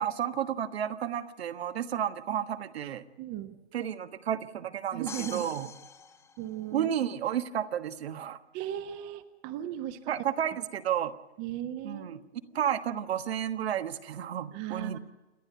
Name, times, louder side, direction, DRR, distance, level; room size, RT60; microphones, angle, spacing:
voice 1, 0.0-3.0 3.7-5.7 6.7-8.4 10.1-11.1 11.8-12.2 12.5-15.0, right 9 dB, 70° right, 9 dB, 1.4 m, -32 dB
voice 2, 3.2-3.6 4.9-5.5 6.4-6.9 8.5-10.1 11.4-12.3 12.5-12.6 14.5-15.0, right 12 dB, 30° right, 10 dB, 1.2 m, -37 dB
sound 1, 5.1-7.0, left 5 dB, 10° left, 1.0 m, -44 dB
29.0 x 10.5 x 9.4 m, 1.1 s
hypercardioid pair, 145°, 33 cm